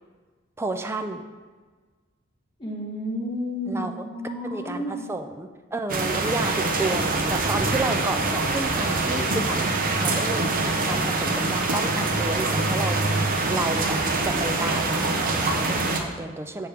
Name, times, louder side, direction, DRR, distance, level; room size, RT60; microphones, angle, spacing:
voice 1, 0.6-1.2 3.7-4.0 4.4-16.7, right 2 dB, 10° right, 6 dB, 0.4 m, -31 dB
voice 2, 2.6-5.1, equal, 25° left, -3 dB, 1.1 m, -31 dB
sound 1, 5.9-16.0, right 3 dB, 45° right, 0.7 m, -24 dB
6.7 x 3.5 x 5.6 m, 1.4 s
head